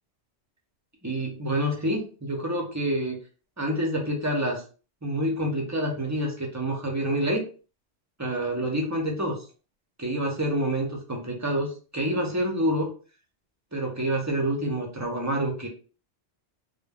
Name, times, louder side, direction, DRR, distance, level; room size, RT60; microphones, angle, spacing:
voice 1, 1.0-3.2 3.6-4.6 5.0-7.5 8.2-9.4 10.0-12.9 13.7-15.7, right 1 dB, 30° right, 0 dB, 0.3 m, -27 dB
2.1 x 2.1 x 3.4 m, 0.37 s
omnidirectional pair, 1.2 m